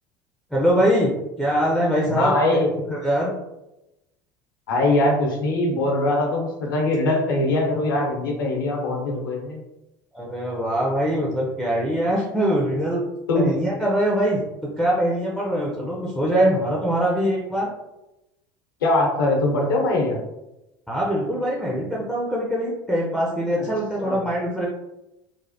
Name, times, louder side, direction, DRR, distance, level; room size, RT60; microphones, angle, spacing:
voice 1, 0.5-2.6 2.9-3.3 10.1-13.0 13.3-14.4 14.8-17.7 20.9-24.7, equal, ahead, -3 dB, 0.6 m, -23 dB
voice 2, 2.1-2.7 4.7-9.6 13.3-13.5 18.8-20.2 23.6-23.7 23.9-24.2, left 2 dB, 85° left, 0 dB, 0.8 m, -22 dB
3.2 x 2.0 x 2.7 m, 0.94 s
hypercardioid pair, 75°, 11 cm